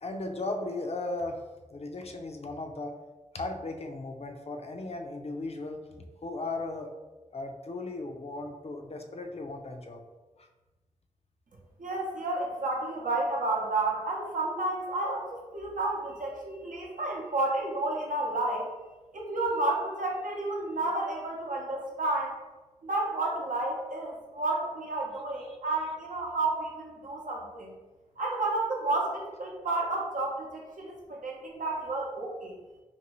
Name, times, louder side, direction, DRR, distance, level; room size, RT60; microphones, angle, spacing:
voice 1, 0.0-1.4 1.7-3.0 3.3-5.8 6.2-6.9 7.3-10.0 10.4-10.5 25.5-25.6, left 2 dB, 50° left, 4 dB, 0.4 m, -36 dB
voice 2, 11.8-18.7 19.1-22.4 22.8-27.7 28.2-32.5, right 2 dB, 85° right, -1 dB, 0.7 m, -31 dB
2.6 x 2.6 x 3.0 m, 1.2 s
cardioid pair, 50°, 13 cm